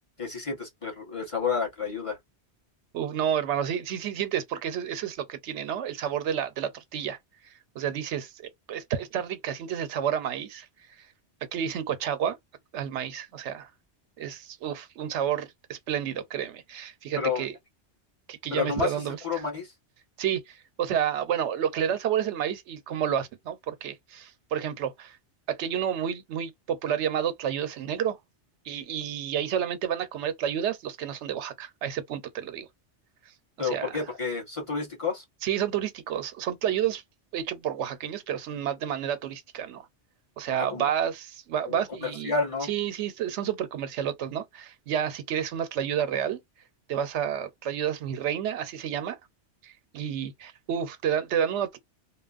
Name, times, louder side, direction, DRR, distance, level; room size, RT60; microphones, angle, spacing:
voice 1, 0.2-2.2 17.2-17.5 18.5-19.7 33.6-35.2 40.5-40.9 41.7-42.7, left 5 dB, 30° left, 1.2 m, -30 dB
voice 2, 2.9-7.2 7.7-10.7 11.5-12.4 12.7-13.7 14.2-17.6 18.3-19.2 20.2-25.2 25.5-28.2 28.7-32.7 33.6-34.0 35.4-37.0 37.3-39.9 40.4-42.3 42.7-46.4 46.9-49.2 49.6-51.8, right 9 dB, 90° right, 0.9 m, -30 dB
2.9 x 2.2 x 2.3 m
omnidirectional pair, 1.2 m